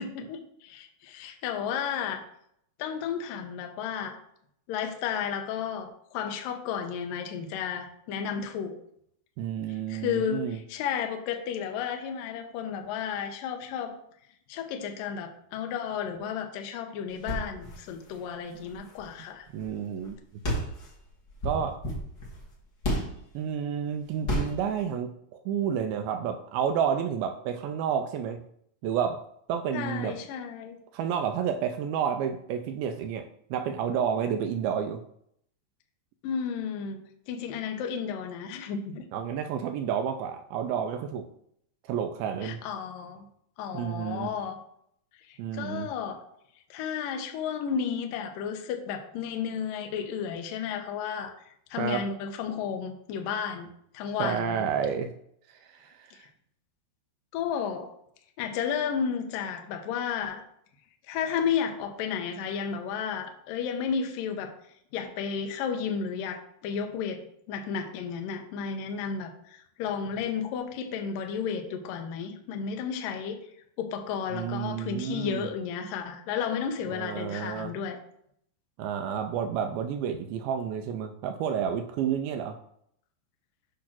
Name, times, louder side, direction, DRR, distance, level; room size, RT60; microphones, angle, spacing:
voice 1, 0.0-2.2 2.8-4.2 4.7-8.8 9.9-14.0 14.5-19.5 29.7-30.8 36.2-39.1 42.4-43.3 43.6-44.6 45.3-46.2 46.7-51.3 51.7-53.7 53.9-54.6 56.1-56.2 57.3-57.9 58.4-60.4 61.1-64.5 64.9-67.2 67.5-73.4 73.8-78.0, left 7 dB, 75° left, 4 dB, 2.2 m, -32 dB
voice 2, 9.4-10.6 19.5-20.2 21.4-21.8 23.3-28.4 28.8-29.2 29.5-30.2 30.9-35.0 39.1-41.3 41.9-42.6 43.7-44.3 45.4-45.9 51.8-52.0 54.2-55.1 55.5-56.2 74.3-75.5 76.9-77.7 78.8-82.6, right 8 dB, 80° right, 7 dB, 2.3 m, -30 dB
sound 1, 17.1-19.7 20.0-20.1 20.4-23.3 24.2-24.7, equal, 40° left, 1.6 m, -32 dB
8.5 x 3.1 x 5.9 m, 0.70 s
omnidirectional pair, 4.5 m